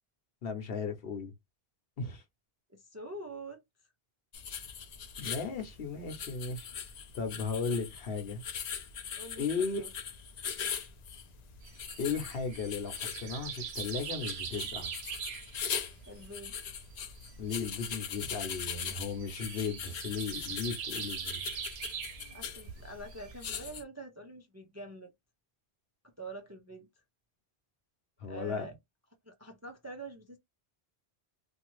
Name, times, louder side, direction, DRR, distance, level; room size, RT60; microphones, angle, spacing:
voice 1, 0.4-1.3 2.0-2.2 5.2-6.7 7.1-8.4 9.4-9.8 12.0-14.9 17.4-21.5 28.2-28.7, left 5 dB, 70° left, 1.0 m, -36 dB
voice 2, 2.7-3.6 7.7-7.8 9.1-9.9 16.1-16.5 22.3-25.1 26.0-26.9 28.2-28.7 29.2-30.4, right 2 dB, 25° right, 0.4 m, -46 dB
sound 1, 4.3-23.8, left 7 dB, 55° left, 0.5 m, -41 dB
Birds mixed sound, 11.6-23.7, right 7 dB, 85° right, 0.9 m, -43 dB
2.6 x 2.3 x 3.0 m
omnidirectional pair, 1.0 m